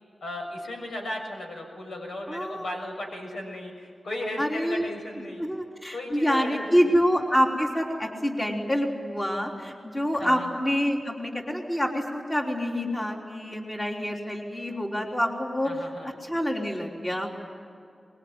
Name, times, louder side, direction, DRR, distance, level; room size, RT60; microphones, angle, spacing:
voice 1, 0.2-5.4 5.9-6.9 10.1-10.5 15.6-16.1, left 1 dB, 90° left, 1 dB, 7.0 m, -36 dB
voice 2, 2.3-2.7 4.4-4.9 5.2-15.7 16.2-17.4, equal, 20° left, 0 dB, 3.5 m, -27 dB
24.5 x 22.0 x 9.6 m, 2.4 s
wide cardioid pair, 100°, 0 cm